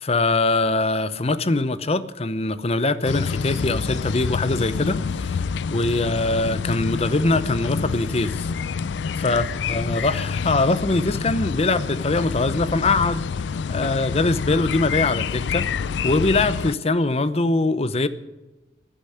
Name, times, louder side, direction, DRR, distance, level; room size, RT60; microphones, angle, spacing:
voice 1, 0.0-5.4 5.7-8.5 9.2-13.2 13.7-15.7 16.0-18.1, left 2 dB, 35° left, 0.8 m, -22 dB
sound 1, 3.0-16.8, left 5 dB, 80° left, 0.4 m, -27 dB
12.0 x 10.0 x 9.8 m
head